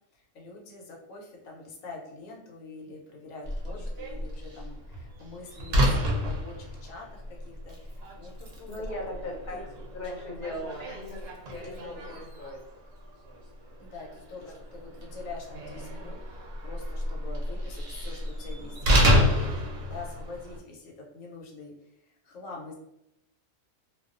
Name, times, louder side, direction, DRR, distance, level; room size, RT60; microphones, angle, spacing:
voice 1, 0.1-8.9 9.5-9.6 13.8-22.7, left 3 dB, 85° left, -1 dB, 1.0 m, -45 dB
Slam, 3.4-20.6, equal, 60° right, 0.7 m, -30 dB
voice 2, 8.7-9.7 9.9-12.6, left 1 dB, 50° left, -1 dB, 0.6 m, -38 dB
2.3 x 2.2 x 2.4 m, 0.85 s
omnidirectional pair, 1.4 m